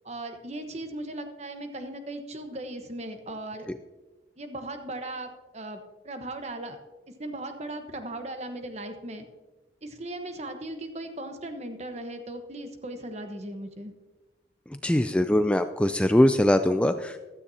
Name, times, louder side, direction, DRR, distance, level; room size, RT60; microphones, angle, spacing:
voice 1, 0.0-3.7 4.4-6.8 7.2-9.2 9.8-13.9, right 1 dB, 40° right, 6 dB, 1.1 m, -37 dB
voice 2, 14.8-17.2, left 1 dB, 5° left, 8 dB, 0.3 m, -22 dB
15.0 x 12.5 x 2.8 m, 1.2 s
head